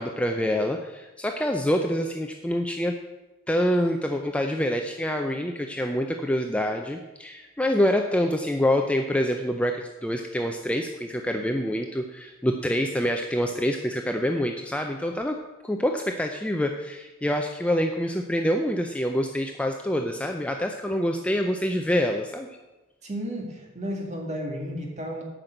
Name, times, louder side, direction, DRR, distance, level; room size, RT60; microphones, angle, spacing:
voice 1, 0.0-3.0 3.5-15.4 15.6-22.5, equal, 5° left, 3 dB, 0.5 m, -26 dB
voice 2, 23.0-25.2, equal, 35° right, 0 dB, 2.0 m, -33 dB
9.0 x 6.0 x 7.8 m, 1.1 s
head